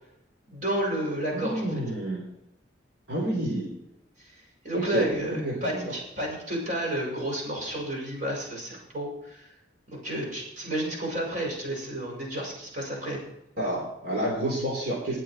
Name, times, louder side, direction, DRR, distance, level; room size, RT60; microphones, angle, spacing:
voice 1, 0.5-1.7 4.2-4.3 4.6-9.5 9.9-13.2, right 1 dB, 45° right, -2 dB, 6.2 m, -31 dB
voice 2, 1.3-2.3 3.1-3.7 4.7-5.8 13.6-15.2, right 1 dB, 60° right, -5 dB, 4.2 m, -29 dB
20.5 x 7.8 x 4.6 m, 0.83 s
head